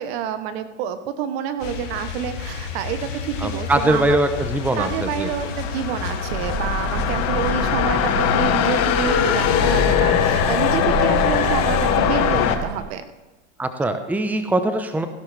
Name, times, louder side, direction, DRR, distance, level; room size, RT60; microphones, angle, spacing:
voice 1, 0.0-4.2 4.7-13.0, right 9 dB, 60° right, 10 dB, 1.2 m, -28 dB
sound 1, 1.6-7.8, left 6 dB, 85° left, 2.5 m, -32 dB
voice 2, 3.4-5.5 13.6-15.1, right 2 dB, 5° right, 8 dB, 0.9 m, -22 dB
sound 2, 4.6-12.6, left 9 dB, 45° left, 1.3 m, -21 dB
sound 3, 6.3-12.8, right 3 dB, 85° right, 2.7 m, -29 dB
16.0 x 12.0 x 3.4 m, 1.2 s
hypercardioid pair, 110°, 36 cm